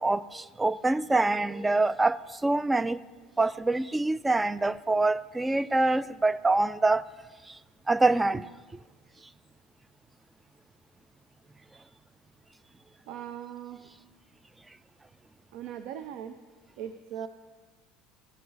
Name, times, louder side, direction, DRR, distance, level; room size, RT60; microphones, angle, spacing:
voice 1, 0.0-3.0 3.4-7.0 7.9-8.5, right 2 dB, 15° right, 0.4 m, -25 dB
voice 2, 13.1-13.8 15.5-16.4 16.8-17.3, right 9 dB, 65° right, 0.5 m, -39 dB
16.0 x 6.7 x 4.1 m
hypercardioid pair, 85°, 0 cm